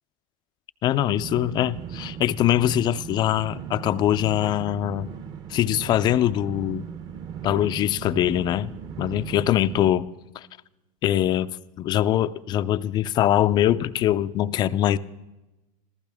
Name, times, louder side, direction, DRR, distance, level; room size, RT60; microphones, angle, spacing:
voice 1, 0.8-5.1 5.5-6.9 7.4-10.1 10.4-10.5 11.0-11.5 11.8-15.0, left 12 dB, 25° left, 0.4 m, -23 dB
sound 1, 1.2-9.9, right 8 dB, 20° right, 0.7 m, -38 dB
26.5 x 15.0 x 3.5 m
supercardioid pair, 150°, 19 cm